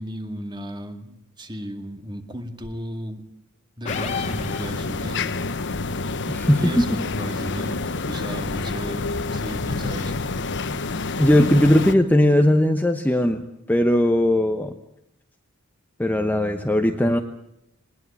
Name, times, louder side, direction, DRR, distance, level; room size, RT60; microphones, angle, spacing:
voice 1, 0.0-3.2 3.8-5.3 6.6-9.1 9.3-10.2, equal, 20° right, 7 dB, 2.1 m, -34 dB
sound 1, 3.8-5.2, left 6 dB, 30° left, 2.1 m, -33 dB
sound 2, 3.9-11.9, left 3 dB, 55° left, 1.2 m, -28 dB
voice 2, 6.3-7.0 11.2-14.7 16.0-17.2, left 1 dB, 10° left, 6 dB, 1.0 m, -19 dB
20.0 x 20.0 x 8.6 m, 0.81 s
head